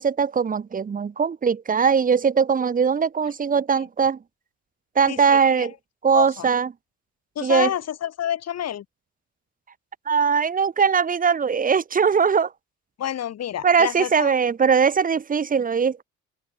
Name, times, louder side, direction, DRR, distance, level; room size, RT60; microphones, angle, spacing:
voice 1, 0.0-4.2 5.0-5.7 6.0-6.7 7.4-7.7 10.1-12.5 13.6-16.0, right 6 dB, 30° right, 0.7 m, -20 dB
voice 2, 6.1-6.5 7.4-8.8 13.0-14.3, left 10 dB, 55° left, 1.2 m, -28 dB
open air
cardioid pair, 90°, 30 cm